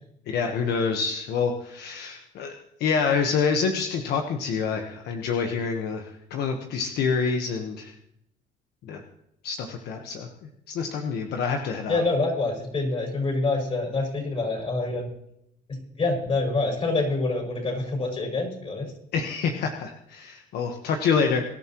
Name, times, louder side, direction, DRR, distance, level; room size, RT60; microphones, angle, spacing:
voice 1, 0.3-2.5 2.8-7.9 8.8-9.0 9.4-10.3 10.7-12.0 19.1-21.4, left 5 dB, 75° left, 4 dB, 1.3 m, -27 dB
voice 2, 11.9-15.1 15.7-18.9, left 3 dB, 35° left, 1 dB, 6.4 m, -26 dB
23.5 x 11.0 x 3.1 m, 0.77 s
cardioid pair, 110°, 17 cm